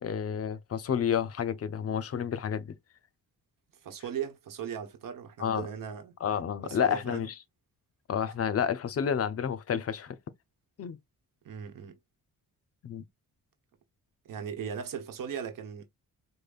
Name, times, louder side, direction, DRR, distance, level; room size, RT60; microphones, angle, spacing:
voice 1, 0.0-2.7 5.4-5.7 6.2-7.3 8.1-10.2 10.8-11.0 12.8-13.0, left 8 dB, 45° left, 0.6 m, -30 dB
voice 2, 3.8-6.2 6.6-7.2 11.4-11.9 14.2-15.9, right 8 dB, 70° right, 1.0 m, -38 dB
5.1 x 2.1 x 2.4 m
cardioid pair, 125°, 34 cm